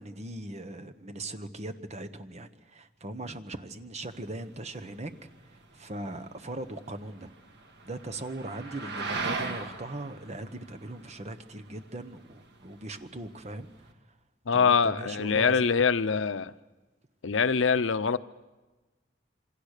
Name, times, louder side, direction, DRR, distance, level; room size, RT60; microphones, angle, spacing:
voice 1, 0.0-5.1 5.5-7.3 7.8-13.7 14.5-15.7, right 2 dB, 35° right, 1.2 m, -39 dB
sound 1, 4.0-13.9, right 3 dB, 60° right, 2.0 m, -40 dB
voice 2, 14.5-16.5 17.2-18.2, left 5 dB, 80° left, 0.7 m, -24 dB
27.5 x 25.0 x 6.7 m
head